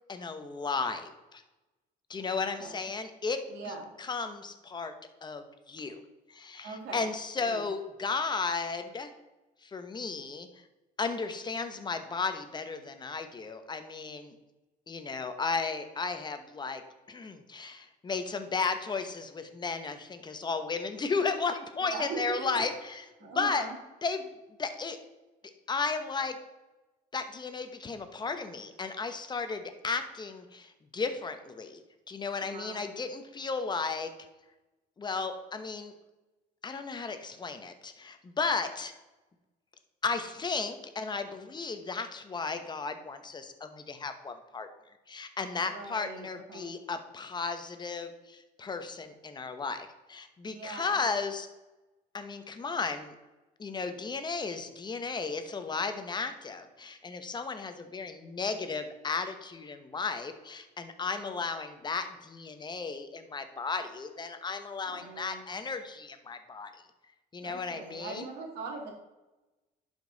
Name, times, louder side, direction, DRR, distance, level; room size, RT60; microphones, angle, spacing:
voice 1, 0.1-1.4 2.1-3.4 3.7-4.9 5.2-6.0 6.3-9.1 9.6-10.5 11.0-14.3 14.9-16.8 17.1-23.0 23.4-23.6 24.0-24.3 24.6-25.0 25.7-26.3 27.1-31.8 32.1-34.1 35.0-35.9 36.6-38.9 40.0-44.7 45.1-51.5 52.1-53.1 53.6-66.7 67.3-68.3, left 4 dB, 25° left, 8 dB, 1.0 m, -34 dB
voice 2, 2.4-2.8 3.5-3.9 6.6-7.1 7.4-7.7 21.8-22.6 23.2-23.8 32.4-32.8 45.6-46.7 50.4-51.0 64.9-65.4 67.4-68.9, right 4 dB, 75° right, 1 dB, 2.3 m, -41 dB
11.0 x 5.4 x 4.0 m, 1.1 s
cardioid pair, 110°, 17 cm